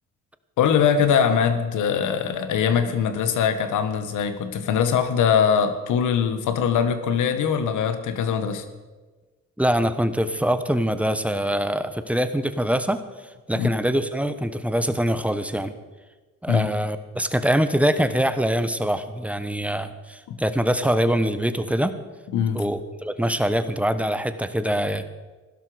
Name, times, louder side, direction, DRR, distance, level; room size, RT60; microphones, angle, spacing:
voice 1, 0.6-8.7 13.6-13.7 16.5-16.7 20.3-20.4 22.3-22.6, left 7 dB, 80° left, 10 dB, 1.5 m, -22 dB
voice 2, 9.6-13.0 13.5-15.7 16.4-21.9 22.5-25.1, equal, 5° right, 11 dB, 1.1 m, -24 dB
16.0 x 12.0 x 5.1 m, 1.3 s
cardioid pair, 90°, 30 cm